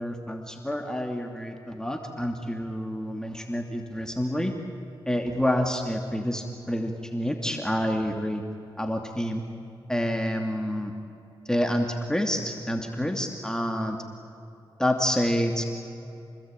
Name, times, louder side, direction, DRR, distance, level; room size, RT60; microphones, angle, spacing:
voice 1, 0.0-4.5 5.1-8.4 8.8-9.4 9.9-10.9 11.4-14.0 14.8-15.6, equal, 5° left, 3 dB, 2.7 m, -28 dB
29.5 x 20.5 x 9.1 m, 2.8 s
cardioid pair, 55°, 9 cm